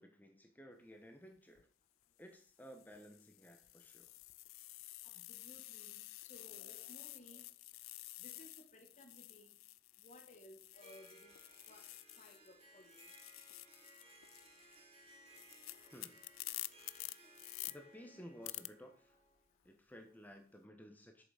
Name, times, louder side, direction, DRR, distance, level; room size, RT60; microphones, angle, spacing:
voice 1, 0.0-1.7 2.2-4.1 15.9-16.2 17.7-19.1 19.6-21.2, equal, 10° left, 1.2 m, -55 dB
sound 1, 1.4-1.6 2.4-12.5 12.8-17.7 18.4-18.7, left 18 dB, 85° left, 0.5 m, -51 dB
voice 2, 5.0-7.5 8.2-9.6 10.0-11.3 11.7-11.9 12.2-13.1, left 1 dB, 35° left, 1.9 m, -60 dB
Harp, 10.7-19.5, right 2 dB, 30° right, 1.9 m, -62 dB
8.3 x 6.9 x 5.1 m
head